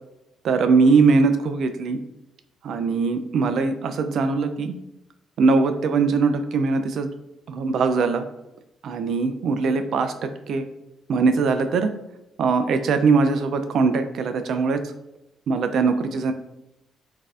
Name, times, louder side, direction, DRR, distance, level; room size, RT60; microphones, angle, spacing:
voice 1, 0.4-2.0 2.6-4.7 5.4-7.1 7.5-8.2 8.8-10.6 11.1-11.9 12.4-14.9 15.5-16.3, right 4 dB, 70° right, 8 dB, 0.3 m, -21 dB
3.9 x 2.7 x 2.4 m, 0.90 s
cardioid pair, 90°, 0 cm